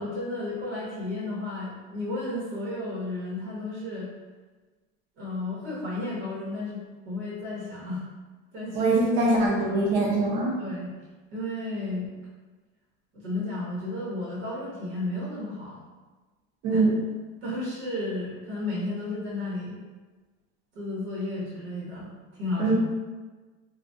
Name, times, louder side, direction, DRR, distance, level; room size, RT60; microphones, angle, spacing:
voice 1, 0.0-4.1 5.2-8.0 8.5-9.0 9.5-10.1 10.6-10.9 11.3-12.1 13.1-15.8 16.7-16.8 17.4-19.8 20.7-22.7, left 2 dB, 90° right, -8 dB, 1.1 m, -33 dB
voice 2, 8.7-10.6 16.6-16.9 22.6-22.7, right 2 dB, 45° right, -4 dB, 0.8 m, -23 dB
2.4 x 2.2 x 2.6 m, 1.3 s
supercardioid pair, 155°, 34 cm